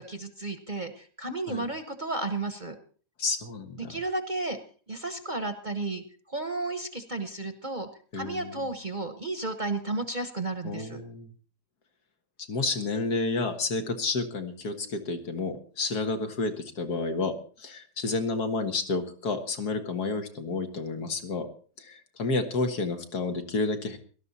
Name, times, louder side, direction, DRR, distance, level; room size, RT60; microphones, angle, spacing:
voice 1, 0.0-2.8 3.8-4.6 4.9-7.9 8.1-11.0, right 2 dB, 30° right, 8 dB, 1.1 m, -33 dB
voice 2, 3.2-4.0 8.1-8.7 10.6-11.3 12.5-21.5 21.8-24.0, left 3 dB, 65° left, 5 dB, 2.1 m, -30 dB
17.5 x 12.5 x 4.2 m, 0.41 s
omnidirectional pair, 1.8 m